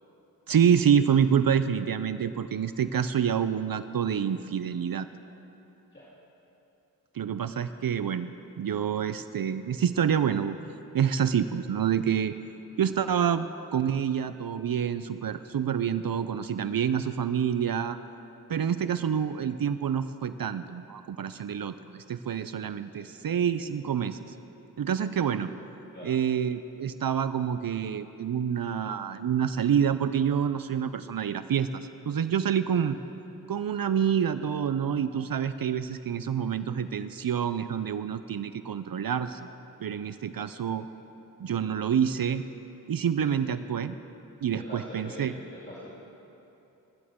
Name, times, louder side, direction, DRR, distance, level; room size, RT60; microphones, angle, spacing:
voice 1, 0.5-5.1 7.1-8.3 8.6-10.6 10.9-12.4 12.8-13.5 13.7-18.0 18.5-24.2 24.8-25.5 26.0-33.0 33.5-39.5 39.8-40.9 41.4-42.4 42.9-43.9 44.4-45.3, right 8 dB, 65° right, 12 dB, 0.5 m, -27 dB
voice 2, 44.5-46.0, equal, 30° left, -9 dB, 2.8 m, -44 dB
25.5 x 11.0 x 3.7 m, 3.0 s
cardioid pair, 40°, 38 cm